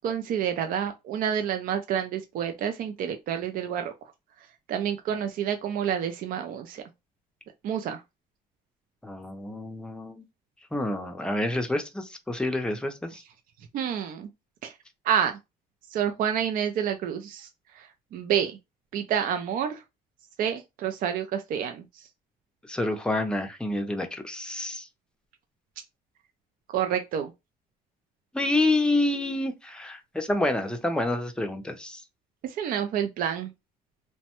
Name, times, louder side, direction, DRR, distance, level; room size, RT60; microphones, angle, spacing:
voice 1, 0.0-3.9 4.7-6.8 7.6-8.0 13.7-14.3 14.6-14.7 15.1-15.4 15.9-17.5 18.1-18.6 18.9-19.8 20.4-21.8 26.7-27.3 32.6-33.5, right 9 dB, 60° right, 0.4 m, -28 dB
voice 2, 9.0-10.2 10.7-13.2 22.6-24.9 28.3-32.0, left 2 dB, 5° left, 0.5 m, -28 dB
3.0 x 2.1 x 2.9 m
cardioid pair, 110°, 17 cm